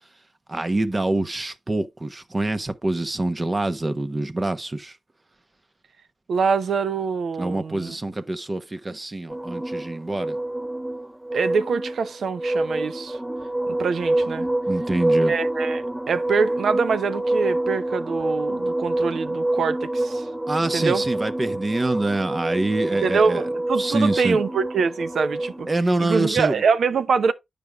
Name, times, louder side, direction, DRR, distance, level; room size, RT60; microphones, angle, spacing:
voice 1, 0.5-5.0 7.4-10.4 14.7-15.3 20.5-23.4 23.8-24.4 25.7-26.6, right 2 dB, 35° right, 1.1 m, -25 dB
voice 2, 6.3-8.0 11.3-13.2 13.7-14.5 15.3-20.3 20.7-21.0 23.0-25.7 26.0-27.3, right 5 dB, 80° right, 0.7 m, -24 dB
sound 1, 9.3-25.8, right 1 dB, 10° right, 0.5 m, -26 dB
9.3 x 5.3 x 3.4 m
cardioid pair, 45°, 0 cm